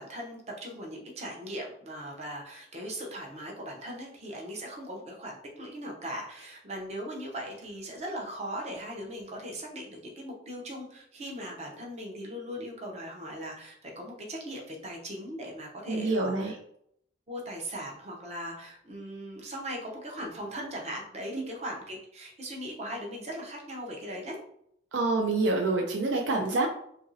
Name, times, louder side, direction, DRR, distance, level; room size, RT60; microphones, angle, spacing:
voice 1, 0.0-16.5 17.3-24.4, equal, 35° right, -1 dB, 0.7 m, -39 dB
voice 2, 15.9-16.6 21.3-21.5 24.9-26.7, right 2 dB, 70° right, 2 dB, 0.4 m, -27 dB
2.9 x 2.5 x 2.7 m, 0.70 s
head